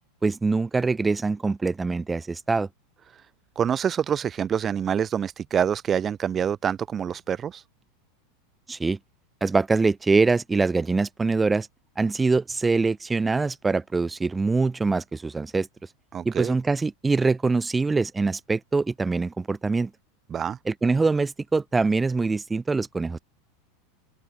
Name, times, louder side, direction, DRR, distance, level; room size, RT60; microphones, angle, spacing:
voice 1, 0.2-2.7 8.7-9.0 9.4-11.7 12.0-15.7 16.2-19.9 20.7-23.2, right 3 dB, 15° right, 4.1 m, -24 dB
voice 2, 3.5-7.6 16.1-16.5 20.3-20.6, right 8 dB, 30° right, 1.6 m, -26 dB
hypercardioid pair, 95°, 0 cm